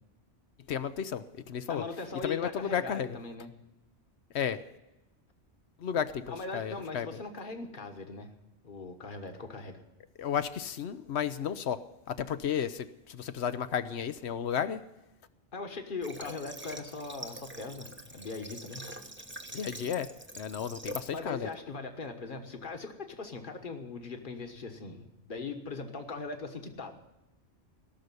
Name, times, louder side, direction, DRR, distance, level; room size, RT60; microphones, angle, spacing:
voice 1, 0.7-1.8 2.2-3.1 4.3-4.6 5.8-7.1 10.2-11.8 12.1-14.8 19.5-20.1 20.4-21.5, left 8 dB, 70° left, 12 dB, 0.9 m, -33 dB
voice 2, 1.7-3.5 6.3-8.3 8.6-9.8 15.5-18.9 21.1-27.0, left 3 dB, 45° left, 6 dB, 1.5 m, -40 dB
Water / Water tap faucet, 16.0-21.2, right 1 dB, 10° right, 0.8 m, -44 dB
17.0 x 6.6 x 9.7 m, 0.98 s
omnidirectional pair, 1.2 m